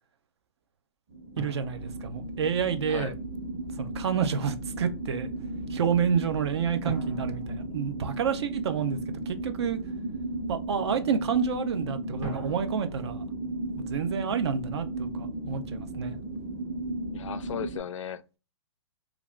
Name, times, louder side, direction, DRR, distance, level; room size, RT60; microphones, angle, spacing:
sound 1, 1.1-17.8, right 2 dB, 20° right, 0.8 m, -35 dB
voice 1, 1.4-3.1 3.8-5.3 5.7-9.0 9.3-9.8 10.5-13.2 13.8-16.2, right 7 dB, 60° right, 0.5 m, -29 dB
sound 2, 1.4-3.0 6.8-8.7 12.2-14.5, right 1 dB, 75° right, 1.6 m, -43 dB
sound 3, 1.6-7.6, right 2 dB, 10° left, 0.6 m, -45 dB
voice 2, 17.1-18.4, left 8 dB, 85° left, 0.4 m, -36 dB
3.2 x 2.4 x 2.4 m
hypercardioid pair, 165°, 16 cm